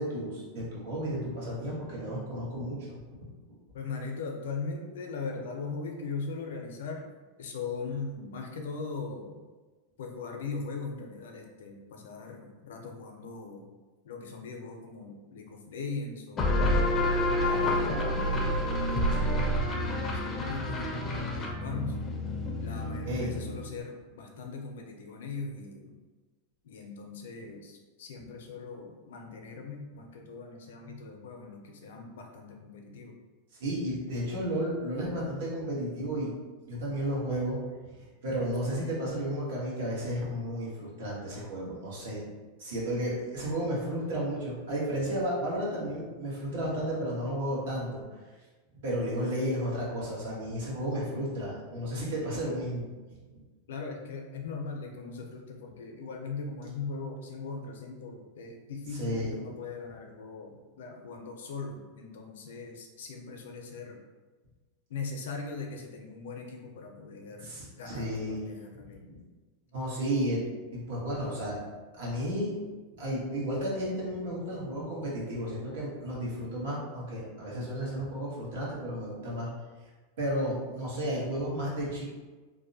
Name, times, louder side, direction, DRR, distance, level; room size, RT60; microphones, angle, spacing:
voice 1, 0.0-3.0 23.0-23.3 33.6-36.3 36.6-37.6 37.9-42.2 42.6-48.2 48.8-52.9 59.0-59.3 67.4-68.4 69.1-69.2 69.7-70.4 70.7-71.6 71.9-72.6 73.0-79.5 80.2-82.0, equal, 80° right, -5 dB, 1.1 m, -33 dB
voice 2, 3.7-7.1 7.4-9.4 10.0-13.7 14.0-16.8 17.4-18.6 18.9-22.0 22.6-26.0 26.6-33.2 53.7-64.0 64.9-69.0, left 4 dB, 90° left, 2 dB, 0.5 m, -40 dB
sound 1, 16.4-23.7, left 1 dB, 20° left, 0.4 m, -28 dB
2.6 x 2.1 x 2.6 m, 1.3 s
supercardioid pair, 155°, 0 cm